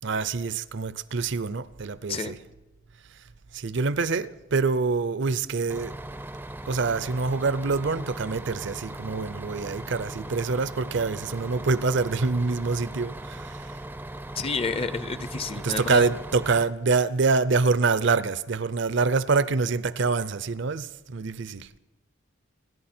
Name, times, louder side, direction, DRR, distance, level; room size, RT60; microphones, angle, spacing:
voice 1, 0.0-2.4 3.1-3.2 3.5-6.0 6.7-13.8 15.6-21.7, right 4 dB, 60° right, 0.6 m, -26 dB
Bus, 5.7-16.6, right 1 dB, 10° right, 0.5 m, -39 dB
voice 2, 14.4-16.0, left 4 dB, 30° left, 0.6 m, -29 dB
28.0 x 11.0 x 4.4 m
head